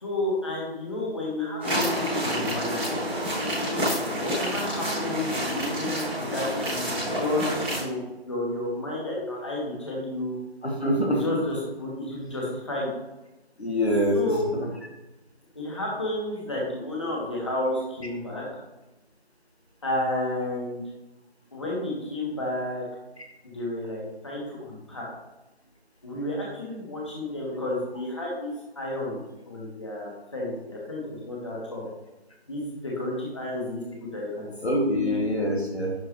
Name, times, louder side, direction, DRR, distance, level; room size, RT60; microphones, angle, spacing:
voice 1, 0.0-2.9 4.2-10.4 11.1-12.9 14.1-14.5 15.6-18.4 19.8-20.8 21.5-22.8 23.4-25.1 26.0-29.2 29.5-31.8 32.5-35.2, left 1 dB, 30° left, -4 dB, 1.9 m, -31 dB
sound 1, 1.6-7.8, equal, 10° right, 2.0 m, -28 dB
voice 2, 10.6-11.4 13.6-14.7 34.6-35.9, equal, 80° left, 1 dB, 2.1 m, -25 dB
11.0 x 4.9 x 3.3 m, 1.0 s
figure-of-eight pair, 165°, 32 cm